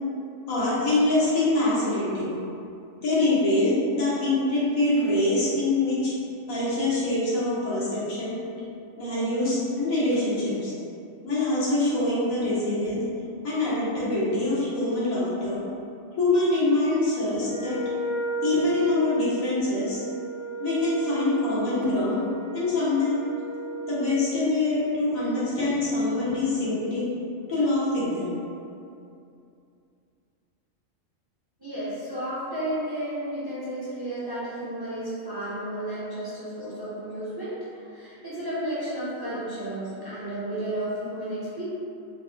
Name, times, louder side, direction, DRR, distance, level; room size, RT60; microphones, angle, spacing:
voice 1, 0.5-2.3 3.0-6.1 6.5-8.3 9.0-10.7 11.2-13.0 13.4-15.6 16.2-17.8 18.4-20.0 20.6-22.3 22.5-23.2 23.8-27.0 27.5-28.3, left 2 dB, 90° left, -9 dB, 1.4 m, -24 dB
Wind instrument woodwind instrument, 17.4-24.1, right 2 dB, 60° right, 0.8 m, -34 dB
voice 2, 31.6-41.6, right 1 dB, 30° right, -11 dB, 0.4 m, -32 dB
4.0 x 2.1 x 2.6 m, 2.6 s
omnidirectional pair, 1.4 m